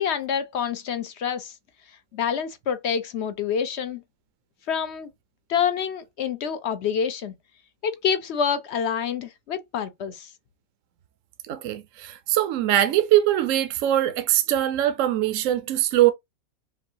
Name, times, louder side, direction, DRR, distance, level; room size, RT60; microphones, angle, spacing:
voice 1, 0.0-1.5 2.1-4.0 4.7-5.1 5.5-7.3 7.8-10.3, left 7 dB, 60° left, 0.8 m, -27 dB
voice 2, 11.5-16.1, right 13 dB, 70° right, 0.9 m, -22 dB
5.2 x 2.4 x 2.8 m
omnidirectional pair, 1.5 m